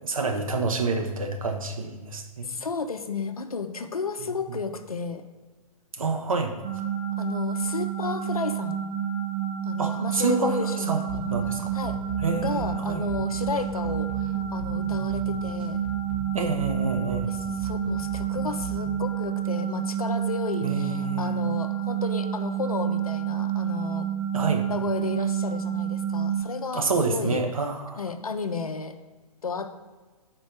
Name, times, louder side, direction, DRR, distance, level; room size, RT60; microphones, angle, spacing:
voice 1, 0.0-2.5 4.5-4.6 5.9-6.5 9.8-10.6 10.9-11.0 11.3-11.7 12.2-13.0 16.3-17.3 20.6-21.4 24.3-24.6 26.7-28.0, right 4 dB, 65° right, 4 dB, 0.9 m, -28 dB
voice 2, 2.4-5.2 7.2-8.8 9.6-11.3 11.7-12.0 12.4-15.8 17.3-24.1 24.7-27.4 28.0-29.0 29.4-29.8, left 5 dB, 75° left, 9 dB, 0.6 m, -33 dB
sound 1, 6.6-26.4, right 9 dB, 25° right, 1.0 m, -29 dB
sound 2, 11.1-19.1, right 3 dB, 5° right, 0.6 m, -38 dB
5.2 x 4.3 x 5.9 m, 1.3 s
figure-of-eight pair, 120°, 19 cm